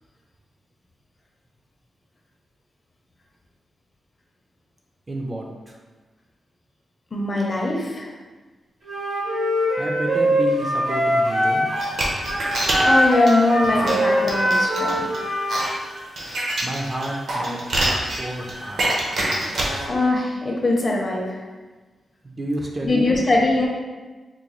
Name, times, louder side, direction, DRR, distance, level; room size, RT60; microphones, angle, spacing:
voice 1, 5.1-5.8 9.8-11.7 16.6-17.6 18.2-19.1 22.2-23.1, right 1 dB, 25° right, 0 dB, 0.4 m, -30 dB
voice 2, 7.1-8.1 12.8-15.1 19.9-21.4 22.8-23.7, left 2 dB, 30° left, -1 dB, 0.6 m, -21 dB
Wind instrument woodwind instrument, 8.8-11.9 12.2-15.6, equal, 85° right, 1.2 m, -22 dB
sound 1, 11.7-19.9, right 1 dB, 65° right, 0.7 m, -26 dB
3.7 x 2.2 x 3.0 m, 1.3 s
wide cardioid pair, 125°, 0 cm